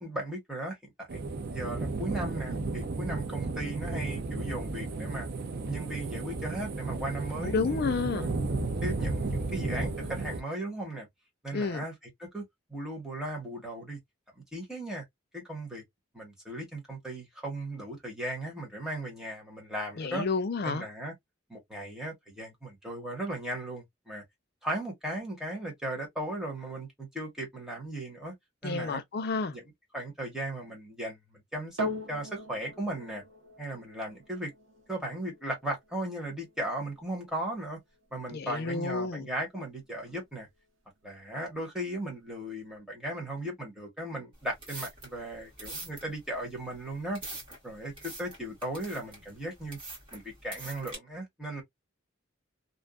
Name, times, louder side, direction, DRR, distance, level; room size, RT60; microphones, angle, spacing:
voice 1, 0.0-1.2 1.5-5.3 5.7-8.4 8.8-11.1 11.4-11.9 12.2-12.4 12.7-14.0 14.4-15.0 15.3-15.8 16.1-20.3 20.6-21.1 21.5-24.2 24.6-28.3 28.6-29.0 29.5-29.6 29.9-33.2 33.6-34.5 34.9-37.8 38.1-40.5 41.0-47.2 47.6-49.8 50.1-51.6, right 1 dB, 5° right, 1.2 m, -37 dB
sound 1, 1.1-10.4, right 3 dB, 55° right, 0.5 m, -33 dB
voice 2, 7.4-8.3 11.5-11.8 20.0-20.9 28.6-29.6 38.3-39.3, left 4 dB, 55° left, 0.4 m, -30 dB
sound 2, 31.8-40.3 41.1-41.2, equal, 75° right, 0.9 m, -43 dB
sound 3, 44.3-51.0, right 2 dB, 25° right, 1.4 m, -45 dB
2.6 x 2.3 x 2.2 m
head